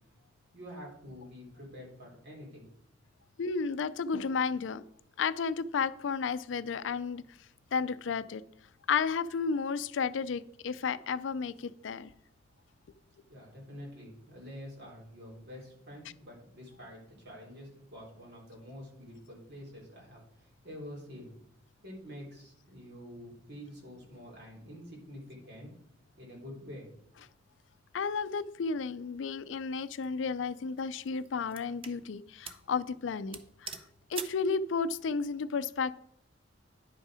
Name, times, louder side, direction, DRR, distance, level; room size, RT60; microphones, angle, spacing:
voice 1, 0.5-2.7 13.3-21.3 21.8-25.7 26.2-27.1, equal, 60° right, -3 dB, 3.3 m, -47 dB
voice 2, 3.4-4.8 5.2-7.2 7.7-8.4 8.9-12.1 27.9-33.8 34.1-36.0, left 5 dB, 80° left, 15 dB, 0.4 m, -32 dB
sound 1, 29.7-30.1 30.8-32.0 32.4-32.7 33.0-33.1 33.3-34.5, right 6 dB, 30° right, 0.6 m, -43 dB
10.0 x 5.4 x 4.9 m, 0.70 s
head